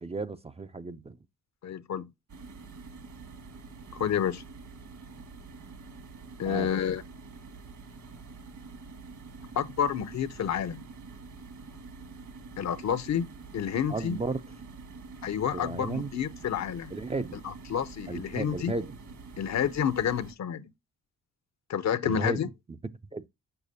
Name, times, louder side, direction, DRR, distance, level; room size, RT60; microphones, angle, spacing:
voice 1, 0.0-1.2 6.4-6.7 13.9-14.4 15.5-16.1 16.9-17.4 18.1-19.0 22.0-22.5 23.1-23.2, right 3 dB, 20° right, 0.5 m, -34 dB
voice 2, 1.6-2.1 3.9-4.4 6.4-7.0 9.6-10.8 12.6-13.3 13.5-14.2 15.2-16.9 17.4-18.7 19.4-20.7 21.7-22.5, left 8 dB, 55° left, 0.7 m, -29 dB
sound 1, 2.3-20.3, right 4 dB, 60° right, 1.8 m, -46 dB
6.7 x 5.8 x 2.6 m
cardioid pair, 75°, 33 cm